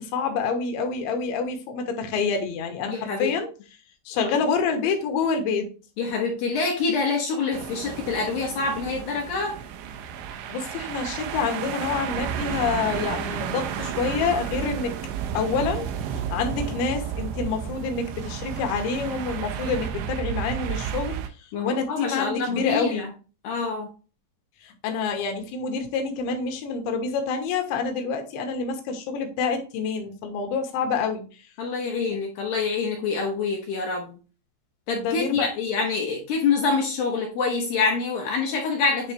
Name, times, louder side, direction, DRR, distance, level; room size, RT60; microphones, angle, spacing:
voice 1, 0.0-3.5 4.1-5.7 10.5-14.9 15.3-15.9 16.3-23.1 24.6-31.5 34.9-35.5, left 5 dB, 90° left, 4 dB, 3.3 m, -27 dB
voice 2, 2.9-3.3 4.2-4.4 6.0-9.6 21.5-23.1 23.4-23.9 31.6-34.2 34.9-39.1, left 4 dB, 70° left, 0 dB, 2.3 m, -26 dB
waves on shingle beach, 7.5-21.3, right 8 dB, 85° right, 3.0 m, -32 dB
9.6 x 3.3 x 3.0 m, 0.35 s
omnidirectional pair, 5.2 m